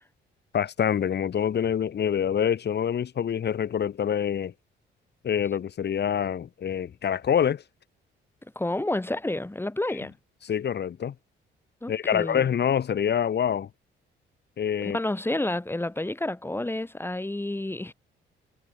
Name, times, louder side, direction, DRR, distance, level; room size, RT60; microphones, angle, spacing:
voice 1, 0.5-4.5 5.2-7.6 10.4-11.1 11.9-13.7 14.6-15.0, left 8 dB, 55° left, 7.2 m, -26 dB
voice 2, 8.5-10.1 11.8-12.4 14.8-17.9, left 1 dB, 10° left, 8.0 m, -30 dB
cardioid pair, 90°, 20 cm